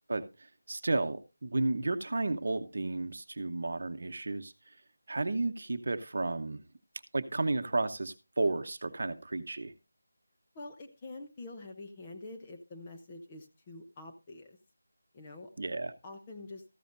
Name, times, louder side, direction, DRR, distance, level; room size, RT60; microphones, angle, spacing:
voice 1, 0.1-4.5 5.1-6.6 7.1-9.7 15.6-15.9, right 2 dB, 50° right, 9 dB, 0.9 m, -32 dB
voice 2, 10.5-14.6 15.1-15.5 16.0-16.6, left 2 dB, 15° left, 3 dB, 0.7 m, -46 dB
13.5 x 10.5 x 2.6 m, 0.27 s
figure-of-eight pair, 175°, 0 cm